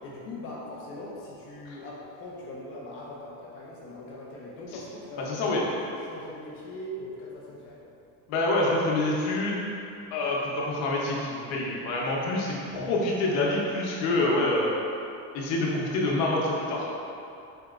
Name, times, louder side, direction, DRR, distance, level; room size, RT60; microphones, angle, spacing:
voice 1, 0.0-5.5 5.8-7.9, left 1 dB, 30° left, -4 dB, 0.4 m, -41 dB
voice 2, 5.2-5.6 8.3-9.6 10.1-14.7 15.3-16.9, left 2 dB, 75° left, -3 dB, 0.8 m, -26 dB
4.3 x 2.8 x 2.4 m, 2.7 s
cardioid pair, 175°, 41 cm